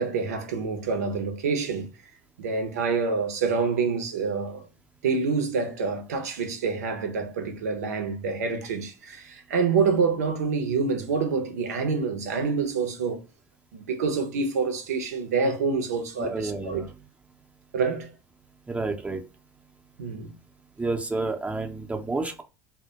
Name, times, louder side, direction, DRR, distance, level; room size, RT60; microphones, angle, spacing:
voice 1, 0.0-1.9 2.4-4.7 5.0-13.2 13.7-16.8 17.7-18.1 20.0-20.3, right 5 dB, 85° right, 0.5 m, -27 dB
voice 2, 16.2-16.9 18.7-19.2 20.8-22.4, right 3 dB, 15° right, 0.5 m, -30 dB
2.1 x 2.1 x 2.8 m
hypercardioid pair, 75°, 8 cm